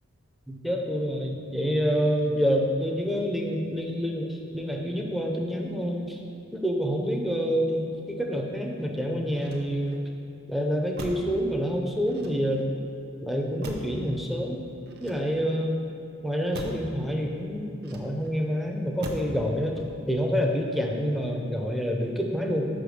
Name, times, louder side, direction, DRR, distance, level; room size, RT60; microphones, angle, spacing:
voice 1, 0.5-6.2 6.5-10.0 10.5-12.7 13.2-14.7 15.0-15.8 16.2-19.8 20.1-22.7, equal, ahead, 0 dB, 0.5 m, -27 dB
Motor vehicle (road), 9.3-10.1 10.9-11.4 12.1-12.8 13.6-14.1 14.9-15.6 16.5-16.9 17.8-18.4 19.0-19.4 19.7-20.2, right 1 dB, 50° right, 0.7 m, -39 dB
5.6 x 5.1 x 6.3 m, 2.7 s
head